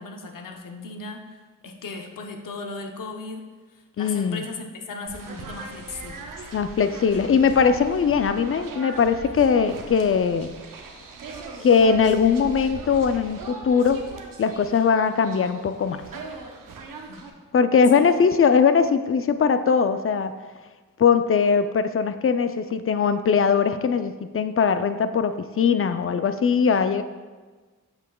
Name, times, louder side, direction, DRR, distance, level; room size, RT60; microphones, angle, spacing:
voice 1, 0.0-1.4 1.6-3.5 3.7-6.5 17.1-17.3 17.9-18.1, left 3 dB, 80° left, 3 dB, 0.8 m, -37 dB
voice 2, 4.0-4.4 6.5-10.5 11.6-14.0 14.4-16.1 17.5-20.3 21.0-27.0, left 6 dB, 45° left, 10 dB, 0.5 m, -20 dB
sound 1, 5.1-17.3, right 3 dB, 85° right, 0.7 m, -40 dB
7.8 x 5.8 x 2.3 m, 1.4 s
cardioid pair, 45°, 32 cm